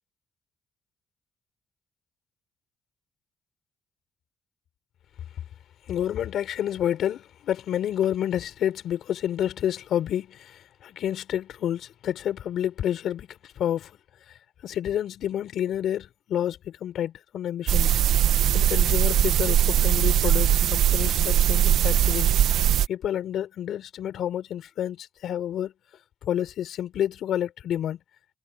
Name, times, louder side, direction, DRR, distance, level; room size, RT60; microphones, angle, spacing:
voice 1, 5.9-14.0 14.3-18.0 18.5-22.4 22.9-25.7 26.2-28.0, left 10 dB, 75° left, 5.4 m, -29 dB
sound 1, 17.7-22.9, right 11 dB, 80° right, 1.6 m, -21 dB
cardioid pair, 90°, 0 cm